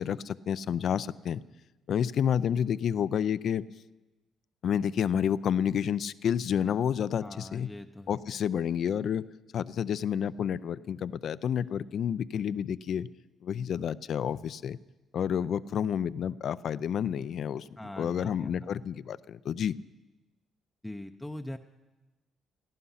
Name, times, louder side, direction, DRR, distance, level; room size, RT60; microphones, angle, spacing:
voice 1, 0.0-1.4 1.9-3.6 4.6-7.7 8.1-9.2 9.5-13.1 13.4-14.8 15.1-17.6 18.0-19.8, left 8 dB, 65° left, 17 dB, 0.4 m, -29 dB
voice 2, 7.2-8.2 17.8-18.8 20.8-21.6, left 1 dB, 10° left, 5 dB, 0.6 m, -42 dB
17.5 x 14.0 x 5.6 m, 1.1 s
cardioid pair, 90°, 0 cm